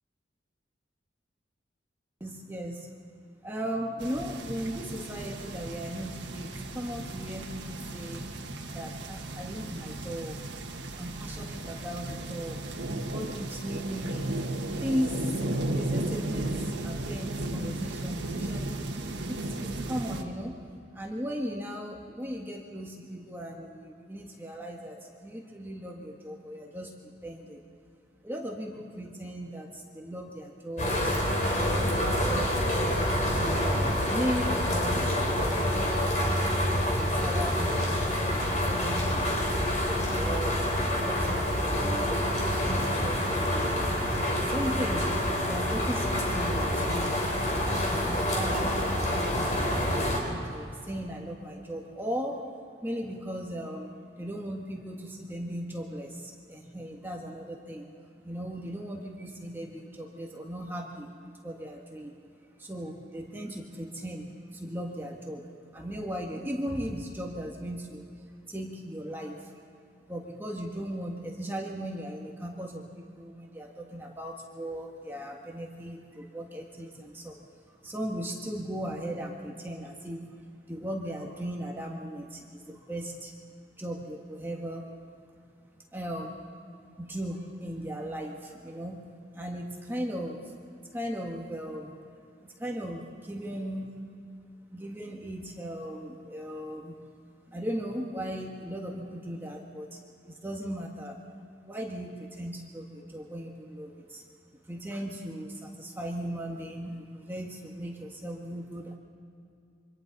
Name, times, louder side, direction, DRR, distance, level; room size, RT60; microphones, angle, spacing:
voice 1, 2.2-2.9 3.4-8.3 8.7-10.4 11.0-12.6 13.1-14.4 14.8-15.4 15.7-20.6 20.9-27.6 28.2-31.2 31.6-33.7 34.1-36.0 36.7-38.0 38.4-39.5 40.1-40.7 41.0-42.1 42.7-44.0 44.5-47.1 47.9-52.4 52.8-57.9 58.2-61.1 61.4-62.1 62.6-65.5 65.7-68.1 68.5-69.5 70.1-77.4 77.7-80.3 80.7-83.3 83.7-84.9 85.9-86.4 87.0-89.1 89.3-90.5 90.9-91.9 92.6-93.9 94.7-96.9 97.5-100.0 100.2-101.2 101.6-104.2 104.7-109.0, equal, 10° right, 0 dB, 1.6 m, -37 dB
sound 1, 4.0-20.2, right 2 dB, 80° right, 1.6 m, -35 dB
sound 2, 30.8-50.2, equal, 40° left, 3.4 m, -27 dB
26.5 x 24.5 x 4.1 m, 2.5 s
head